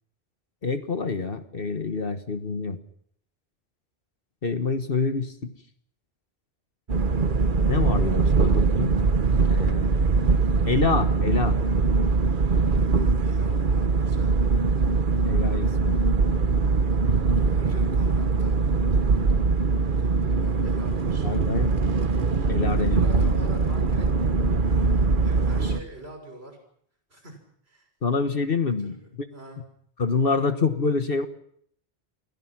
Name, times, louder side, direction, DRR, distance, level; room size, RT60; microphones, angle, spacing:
voice 1, 0.6-2.8 4.4-5.5 7.7-8.9 9.5-10.0 10.7-11.6 15.2-16.0 21.2-21.8 22.5-23.2 28.0-29.3 30.0-31.3, left 4 dB, 60° left, 9 dB, 1.5 m, -26 dB
sound 1, 6.9-25.8, right 4 dB, 55° right, 1.3 m, -22 dB
voice 2, 13.2-14.3 17.3-18.6 19.8-21.9 22.7-24.1 24.5-26.6 27.1-27.4 27.7-27.9 28.8-29.6, right 1 dB, 75° right, 4 dB, 6.6 m, -45 dB
29.5 x 22.0 x 6.1 m, 0.66 s
omnidirectional pair, 1.1 m